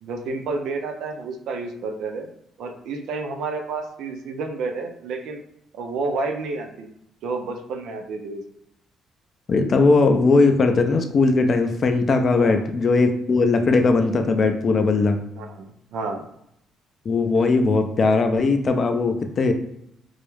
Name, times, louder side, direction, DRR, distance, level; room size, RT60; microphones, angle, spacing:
voice 1, 0.0-2.3 2.6-5.4 5.7-6.9 7.2-8.4 12.3-12.6 15.4-16.2, right 3 dB, 75° right, 5 dB, 0.4 m, -30 dB
voice 2, 9.5-15.2 17.1-19.5, left 3 dB, 40° left, 6 dB, 0.3 m, -19 dB
2.3 x 2.0 x 3.0 m, 0.76 s
cardioid pair, 110°, 0 cm